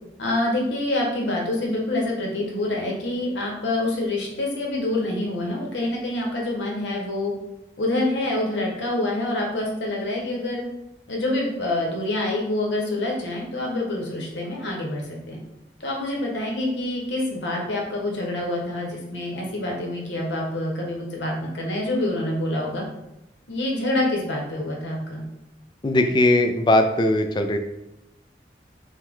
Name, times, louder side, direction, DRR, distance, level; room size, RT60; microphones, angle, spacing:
voice 1, 0.2-7.3 7.8-10.6 11.1-15.4 15.8-22.8 23.5-25.2, left 1 dB, 80° left, -1 dB, 1.1 m, -26 dB
voice 2, 25.8-27.6, left 1 dB, 25° left, 6 dB, 0.3 m, -19 dB
5.6 x 2.2 x 3.6 m, 0.89 s
head